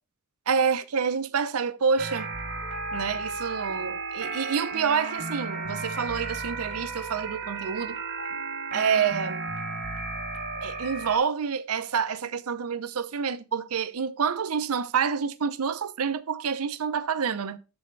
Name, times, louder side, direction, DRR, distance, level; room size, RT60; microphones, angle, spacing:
voice 1, 0.5-2.3 2.9-8.0 8.7-9.4 10.6-17.6, right 6 dB, 75° right, 0.6 m, -28 dB
sound 1, 2.0-11.2, right 3 dB, 50° right, 3.1 m, -34 dB
12.5 x 4.3 x 3.2 m
head